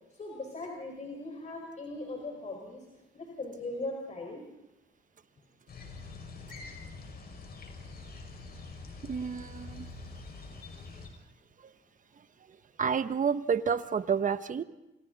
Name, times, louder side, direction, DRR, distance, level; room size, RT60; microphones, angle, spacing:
voice 1, 0.1-2.8 3.1-4.4, left 2 dB, 35° left, 1 dB, 5.0 m, -39 dB
sound 1, 5.7-11.1, left 3 dB, 50° left, 5.7 m, -45 dB
voice 2, 9.0-9.9 11.6-11.7 12.8-14.6, right 6 dB, 40° right, 12 dB, 1.1 m, -29 dB
29.0 x 28.5 x 4.1 m, 0.94 s
cardioid pair, 90°, 20 cm